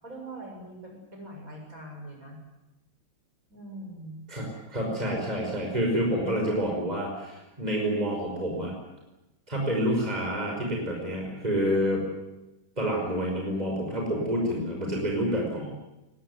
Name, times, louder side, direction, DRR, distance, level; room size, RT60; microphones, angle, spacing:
voice 1, 0.0-2.4 3.5-4.2, right 1 dB, 40° right, 2 dB, 7.2 m, -42 dB
voice 2, 4.3-8.7 9.5-12.0 12.8-15.7, equal, 20° right, -1 dB, 5.8 m, -28 dB
23.0 x 20.0 x 9.7 m, 0.97 s
omnidirectional pair, 2.1 m